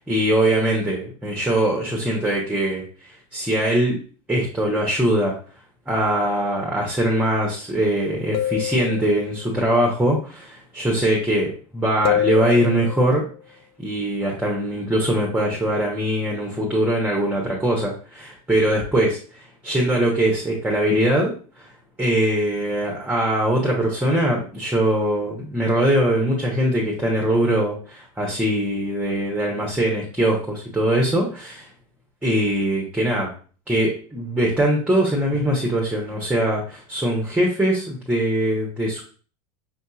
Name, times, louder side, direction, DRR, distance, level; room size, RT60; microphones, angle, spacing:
voice 1, 0.0-4.0 4.3-5.3 5.9-13.2 13.8-21.3 21.6-21.7 22.0-31.7 32.2-33.3 33.7-39.0, right 1 dB, 5° right, -1 dB, 1.0 m, -22 dB
sound 1, 6.1-6.7 8.3-9.5 12.1-13.3, left 12 dB, 30° left, 0.4 m, -27 dB
5.7 x 2.6 x 2.4 m, 0.40 s
hypercardioid pair, 95°, 19 cm